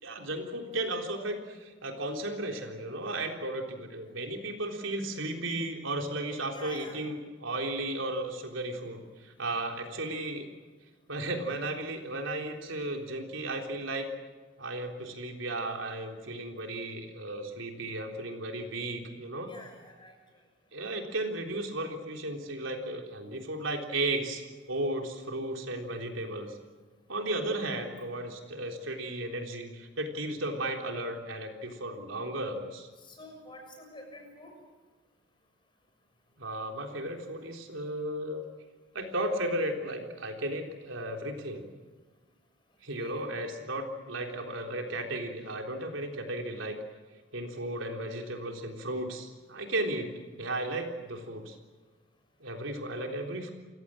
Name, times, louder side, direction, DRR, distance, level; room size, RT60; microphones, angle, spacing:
voice 1, 0.0-10.5 11.1-14.1 14.6-19.5 20.7-24.4 24.7-26.6 27.1-32.9 36.4-38.4 38.9-41.6 42.8-46.8 47.3-51.6 52.4-53.5, right 1 dB, 80° right, 3 dB, 3.7 m, -35 dB
voice 2, 6.5-7.0 19.5-20.2 27.6-27.7 33.0-34.5 43.0-43.3, left 1 dB, 25° left, 3 dB, 6.7 m, -48 dB
29.0 x 16.5 x 9.0 m, 1.4 s
head